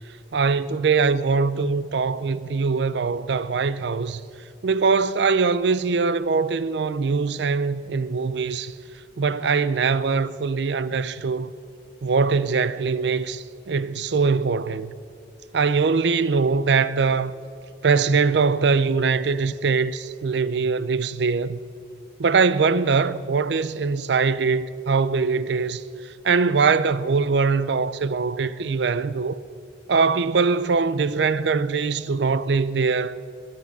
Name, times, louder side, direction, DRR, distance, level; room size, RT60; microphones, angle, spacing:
voice 1, 0.3-4.2 4.6-8.7 9.2-11.5 12.0-14.9 15.5-17.3 17.8-21.6 22.2-25.8 26.2-29.4 29.9-33.2, right 4 dB, 70° right, 0.5 m, -22 dB
20.0 x 10.5 x 6.0 m
head